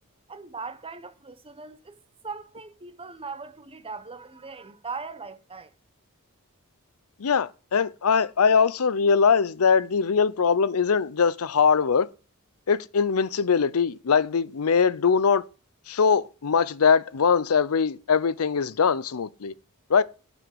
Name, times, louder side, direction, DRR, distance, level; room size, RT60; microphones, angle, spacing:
voice 1, 0.3-5.7, right 4 dB, 25° right, 1.1 m, -39 dB
voice 2, 7.2-12.1 12.7-15.5 15.9-19.5 19.9-20.0, left 6 dB, 75° left, 0.6 m, -22 dB
11.0 x 5.0 x 7.7 m
head